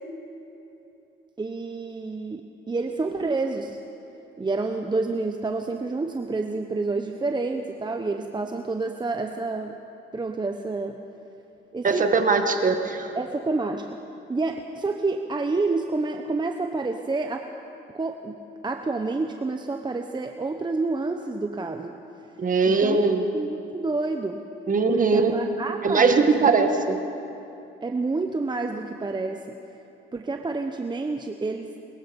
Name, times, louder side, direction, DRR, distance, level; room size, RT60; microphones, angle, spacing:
voice 1, 1.4-3.8 4.4-9.8 10.1-11.0 11.7-12.1 13.2-14.0 14.3-17.5 17.9-18.4 18.6-21.9 22.6-23.0 23.3-24.4 24.9-26.3 27.8-29.5 30.1-31.8, right 3 dB, 20° right, 5 dB, 1.0 m, -28 dB
voice 2, 11.8-13.1 22.4-23.2 24.7-25.4 25.8-27.0, right 4 dB, 40° right, 6 dB, 1.9 m, -21 dB
22.0 x 21.5 x 5.4 m, 2.9 s
cardioid pair, 90°, 20 cm